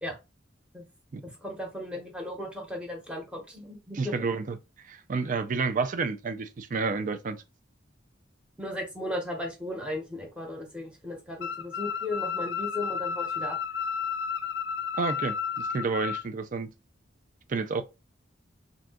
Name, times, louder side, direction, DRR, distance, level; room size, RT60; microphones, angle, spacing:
voice 1, 1.2-4.1 8.6-13.6, left 1 dB, 5° right, 0.8 m, -36 dB
voice 2, 3.9-4.6 4.8-7.4 15.0-16.7 17.5-17.8, right 4 dB, 45° right, 0.4 m, -30 dB
sound 1, 11.4-16.2, left 7 dB, 65° left, 0.4 m, -32 dB
2.6 x 2.3 x 3.7 m
head